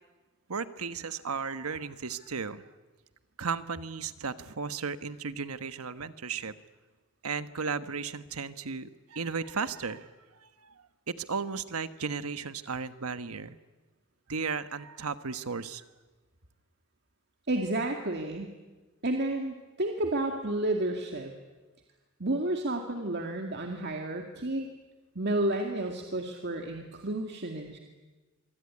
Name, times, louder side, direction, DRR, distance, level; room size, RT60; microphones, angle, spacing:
voice 1, 0.5-2.7 3.4-6.5 7.2-10.1 10.3-13.6 14.3-15.8, right 5 dB, 85° right, 12 dB, 1.3 m, -35 dB
voice 2, 17.5-18.5 19.0-21.3 22.2-24.7 25.2-27.8, right 1 dB, 50° right, 3 dB, 2.2 m, -31 dB
25.0 x 24.0 x 9.8 m, 1.2 s
head